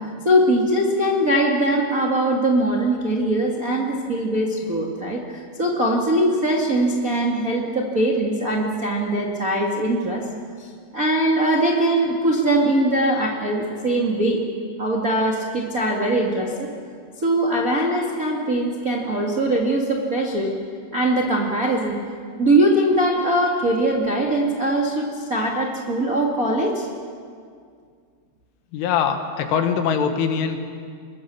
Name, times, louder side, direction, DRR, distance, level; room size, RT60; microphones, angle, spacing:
voice 1, 0.2-10.2 10.6-10.7 10.9-14.4 14.8-16.7 17.2-20.5 20.9-22.0 22.4-26.9, right 1 dB, 45° right, -2 dB, 1.0 m, -21 dB
voice 2, 28.7-30.6, left 7 dB, 85° left, 6 dB, 4.0 m, -22 dB
25.0 x 21.5 x 7.0 m, 2.2 s
omnidirectional pair, 5.5 m